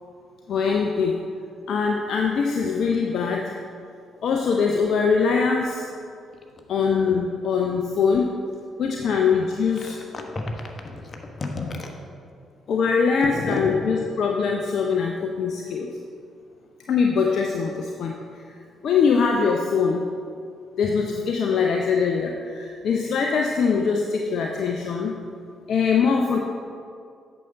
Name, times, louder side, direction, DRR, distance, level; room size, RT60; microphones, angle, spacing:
voice 1, 0.5-1.2 1.7-3.5 4.2-5.9 6.7-8.4 8.8-10.0 12.7-15.9 16.9-18.1 18.8-20.1 20.8-25.1 25.7-26.4, left 5 dB, 60° left, 1 dB, 0.5 m, -22 dB
voice 2, 9.8-11.9 13.2-13.7, left 3 dB, 40° left, 2 dB, 1.1 m, -32 dB
8.4 x 6.4 x 4.1 m, 2.3 s
figure-of-eight pair, 45°, 0 cm